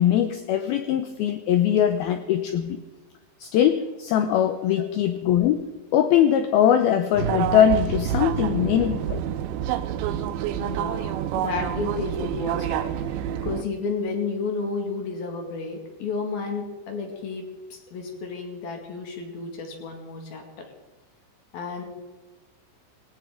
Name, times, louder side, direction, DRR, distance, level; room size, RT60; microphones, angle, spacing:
voice 1, 0.0-2.8 3.4-9.2 10.0-10.1, left 9 dB, 85° left, 8 dB, 2.2 m, -21 dB
sound 1, 7.2-13.6, right 10 dB, 85° right, 3.0 m, -28 dB
voice 2, 10.6-20.7 21.5-21.8, left 4 dB, 60° left, 2 dB, 3.5 m, -32 dB
19.0 x 17.5 x 3.8 m, 1.2 s
omnidirectional pair, 5.3 m